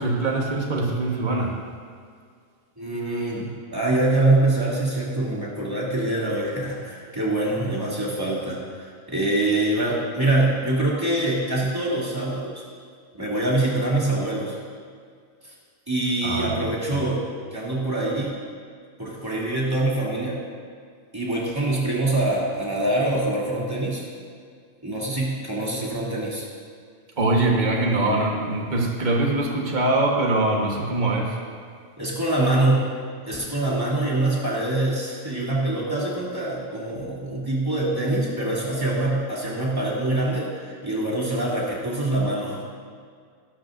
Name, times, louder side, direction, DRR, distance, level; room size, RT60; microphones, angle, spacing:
voice 1, 0.0-1.5 16.2-17.0 27.2-31.4, right 2 dB, 35° right, -1 dB, 1.6 m, -23 dB
voice 2, 2.8-12.5 13.2-14.6 15.4-15.5 15.9-18.3 19.0-20.4 21.1-24.0 24.8-26.4 32.0-32.9 33.3-42.6, right 2 dB, 15° right, -7 dB, 3.0 m, -24 dB
17.0 x 13.0 x 2.7 m, 2.1 s
omnidirectional pair, 1.4 m